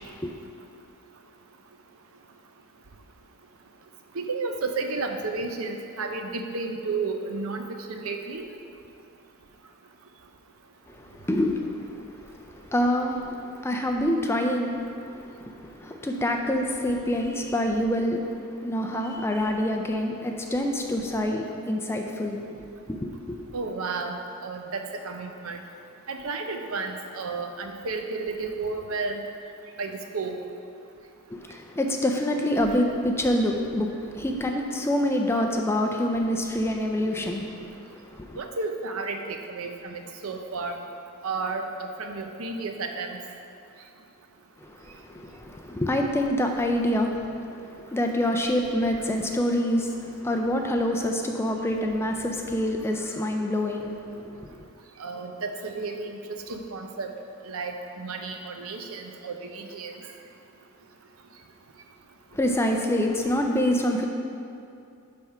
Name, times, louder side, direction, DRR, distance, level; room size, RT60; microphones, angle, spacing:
voice 1, 4.1-8.5 23.5-24.2 24.4-25.6 26.1-29.2 29.8-30.3 38.4-40.8 41.2-43.2 55.0-57.1 57.5-59.9, right 3 dB, 70° right, 4 dB, 0.7 m, -32 dB
voice 2, 11.3-12.0 12.7-13.4 13.6-14.8 15.1-18.3 18.6-23.4 31.3-37.7 38.1-38.4 44.7-47.2 47.9-54.6 62.3-64.1, left 1 dB, 10° left, 2 dB, 0.4 m, -26 dB
10.0 x 3.5 x 5.5 m, 2.6 s
head